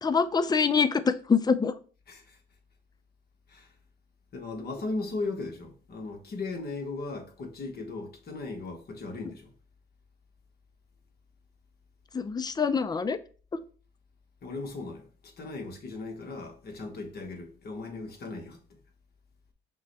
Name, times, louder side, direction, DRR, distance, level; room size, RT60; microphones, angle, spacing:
voice 1, 0.0-1.7 12.1-13.2, left 5 dB, 20° left, 0.4 m, -25 dB
voice 2, 2.1-2.4 3.5-3.7 4.3-9.5 14.4-18.6, left 3 dB, 50° left, 1.2 m, -37 dB
6.1 x 2.2 x 4.0 m
cardioid pair, 90°, 20 cm